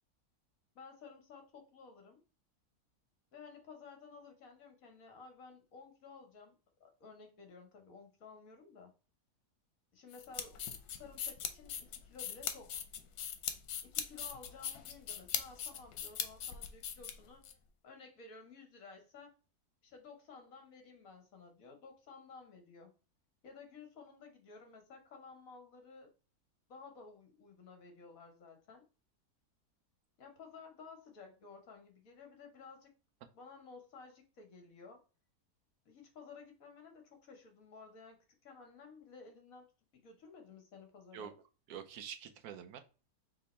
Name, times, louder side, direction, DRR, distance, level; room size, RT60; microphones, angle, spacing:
voice 1, 0.7-2.2 3.3-6.5 6.8-8.9 9.9-10.6 11.0-12.8 13.8-17.4 17.8-19.3 19.8-22.9 23.4-26.1 26.7-28.8 30.2-32.9 33.3-35.0 35.8-39.7 39.9-41.4, left 4 dB, 65° left, 1.4 m, -54 dB
sound 1, 10.1-17.5, left 9 dB, 85° left, 1.2 m, -40 dB
voice 2, 41.7-42.8, right 8 dB, 85° right, 1.2 m, -46 dB
3.4 x 2.9 x 4.1 m
omnidirectional pair, 1.6 m